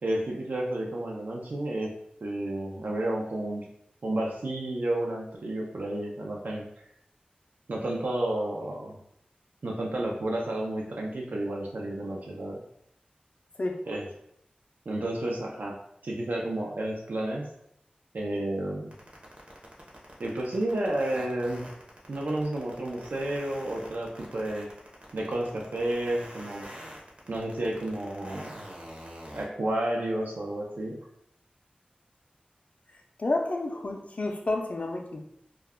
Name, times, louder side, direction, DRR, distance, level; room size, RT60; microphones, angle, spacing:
voice 1, 0.0-1.9 2.2-3.7 4.0-6.7 7.7-9.0 9.6-12.6 13.8-14.1 14.9-15.7 16.0-17.5 18.1-18.9 20.2-21.7 22.1-24.7 25.1-26.7 27.3-28.6 29.3-31.0, right 1 dB, 75° right, -1 dB, 0.4 m, -31 dB
sound 1, 18.9-29.5, equal, 40° right, 0.7 m, -45 dB
voice 2, 33.2-35.2, left 2 dB, 50° left, 2 dB, 0.4 m, -30 dB
2.3 x 2.1 x 3.4 m, 0.74 s
wide cardioid pair, 65°, 3 cm